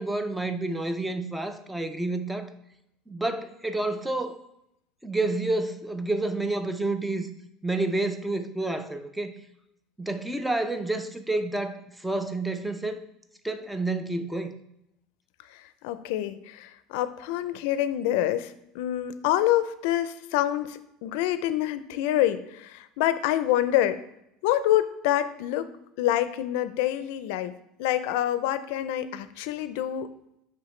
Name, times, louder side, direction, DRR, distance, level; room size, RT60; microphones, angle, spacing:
voice 1, 0.0-2.5 3.1-4.4 5.0-7.3 7.6-9.3 10.0-13.0 13.4-14.5, right 2 dB, 5° right, 0.4 m, -29 dB
voice 2, 15.8-24.0 24.4-25.7 26.0-30.1, left 12 dB, 70° left, 0.4 m, -26 dB
10.0 x 3.5 x 3.2 m
cardioid pair, 160°, 0 cm